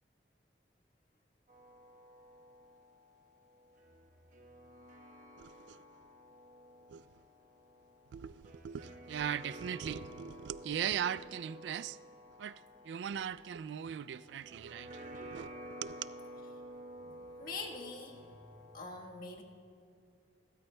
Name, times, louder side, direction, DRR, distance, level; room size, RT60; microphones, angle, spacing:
sound 1, 1.5-18.9, equal, 45° right, 1.2 m, -52 dB
voice 1, 5.4-5.8 6.9-7.0 8.1-12.0 12.4-12.6 12.8-16.1, right 9 dB, 75° right, 0.3 m, -39 dB
voice 2, 17.0-18.4 18.7-19.4, left 3 dB, 55° left, 1.4 m, -44 dB
28.0 x 13.0 x 2.3 m
head